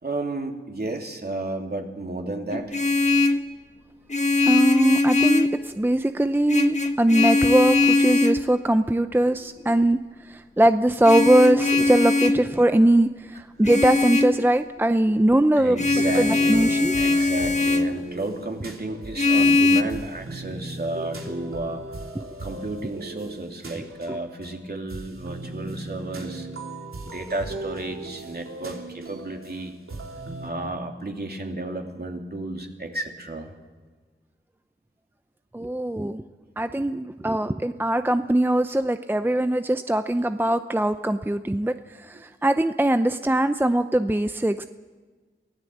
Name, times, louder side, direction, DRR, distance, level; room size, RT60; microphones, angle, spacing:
voice 1, 0.0-2.8 15.6-16.7 17.0-21.8 22.4-26.5 27.0-29.7 30.4-33.5 40.5-40.6 42.1-42.3, right 2 dB, 50° right, 2 dB, 3.1 m, -32 dB
Vehicle horn car horn honking, 2.5-3.5 4.1-5.6 6.5-8.4 11.0-12.4 13.6-14.4 15.8-17.9 19.2-19.8, left 3 dB, 35° left, 1.6 m, -21 dB
voice 2, 4.5-15.8 16.2-16.9 22.1-22.2 24.1-24.2 35.5-36.2 36.6-44.6, right 1 dB, 10° right, 9 dB, 0.6 m, -21 dB
sound 1, 15.8-30.5, right 1 dB, 90° right, 3.2 m, -38 dB
23.5 x 16.0 x 8.0 m, 1.4 s
wide cardioid pair, 65°, 21 cm